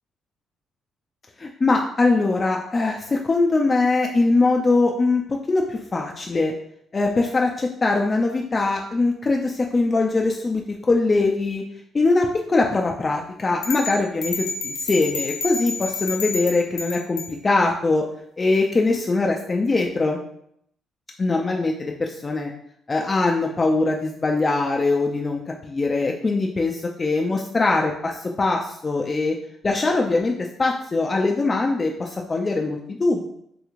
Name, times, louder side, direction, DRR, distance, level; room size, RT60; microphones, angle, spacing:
voice 1, 1.4-5.2 5.5-6.5 6.9-11.6 11.9-18.0 18.4-20.2 21.2-22.5 22.9-29.3 29.6-30.3 30.6-33.3, left 3 dB, 30° left, 0 dB, 0.3 m, -22 dB
sound 1, 13.6-17.3, left 4 dB, 85° left, 0.5 m, -30 dB
3.3 x 3.0 x 2.4 m, 0.72 s
cardioid pair, 90°, 0 cm